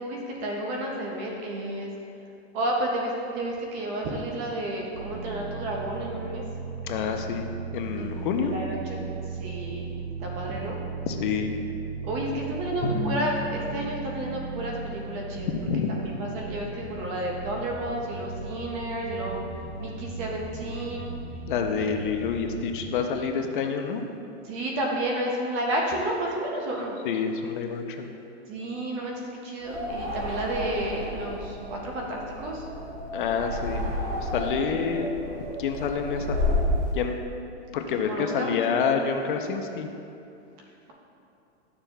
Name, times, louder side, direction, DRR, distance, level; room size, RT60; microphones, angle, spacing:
voice 1, 0.0-1.9 2.5-6.4 8.0-9.1 9.4-10.8 12.0-15.5 16.0-19.4 19.8-21.1 21.8-21.9 24.4-27.0 28.5-32.6 34.7-34.8 38.1-38.6, right 1 dB, 20° right, -1 dB, 0.5 m, -31 dB
sound 1, 4.9-22.9, right 4 dB, 55° right, 0.9 m, -37 dB
voice 2, 6.8-8.5 11.0-11.6 15.5-15.9 21.5-24.0 27.0-28.1 33.1-33.9 34.1-35.1 35.6-36.4 36.9-37.2 37.7-39.9, left 6 dB, 45° left, 5 dB, 0.5 m, -28 dB
Drum, 12.8-15.5, left 2 dB, 15° left, 1.3 m, -35 dB
sound 2, 29.6-36.9, left 1 dB, 90° right, 1.7 m, -31 dB
11.5 x 6.8 x 2.2 m, 2.8 s
supercardioid pair, 160°, 35 cm